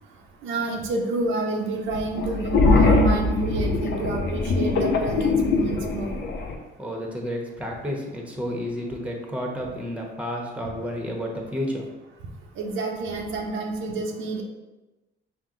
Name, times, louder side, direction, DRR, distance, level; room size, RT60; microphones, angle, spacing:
voice 1, 0.4-6.1 12.6-14.4, right 3 dB, 80° right, 0 dB, 0.8 m, -29 dB
sound 1, 2.2-6.5, left 3 dB, 60° left, 0.7 m, -22 dB
voice 2, 6.8-11.9, equal, 5° right, 0 dB, 1.0 m, -31 dB
5.8 x 2.2 x 3.7 m, 1.1 s
cardioid pair, 90°, 20 cm